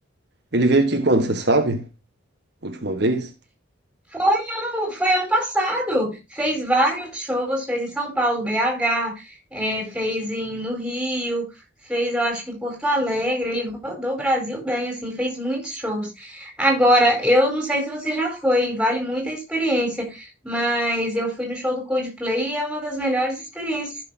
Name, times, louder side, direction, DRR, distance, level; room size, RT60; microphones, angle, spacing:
voice 1, 0.5-1.9 2.6-3.3, right 2 dB, 55° right, 1.4 m, -20 dB
voice 2, 4.1-9.2 9.5-11.5 11.9-23.9, equal, 5° right, 4.2 m, -23 dB
15.0 x 6.6 x 2.7 m
head